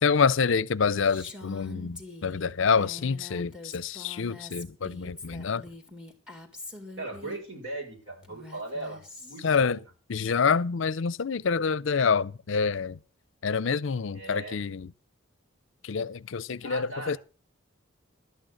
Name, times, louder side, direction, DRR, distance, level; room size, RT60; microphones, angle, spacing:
voice 1, 0.0-5.6 9.4-9.8 10.1-13.0 13.4-14.9 15.8-17.2, left 5 dB, 70° left, 0.5 m, -27 dB
Female speech woman speaking, 1.0-7.4 8.2-9.6, left 2 dB, 5° right, 2.1 m, -45 dB
voice 2, 7.0-9.8 14.1-14.6 16.6-17.1, right 2 dB, 65° right, 5.9 m, -38 dB
12.5 x 9.0 x 6.4 m
head